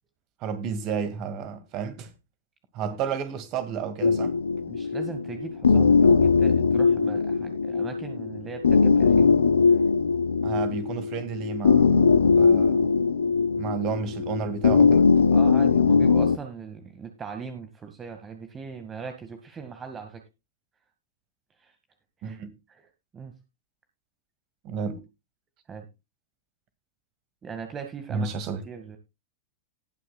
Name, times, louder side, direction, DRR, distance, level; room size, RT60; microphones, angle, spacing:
voice 1, 0.4-2.1 2.7-4.4 10.4-12.0 12.4-13.0 13.6-15.1 22.2-22.5 24.6-25.0 28.1-28.6, right 6 dB, 40° right, 2.1 m, -31 dB
sound 1, 4.0-16.4, left 5 dB, 70° left, 0.6 m, -20 dB
voice 2, 4.7-9.3 15.3-20.2 21.6-21.8 22.2-22.4 22.7-22.9 23.1-23.3 25.7-25.9 27.4-28.3 28.6-29.0, right 6 dB, 20° right, 1.9 m, -39 dB
19.5 x 6.6 x 2.4 m
figure-of-eight pair, 90°, 0 cm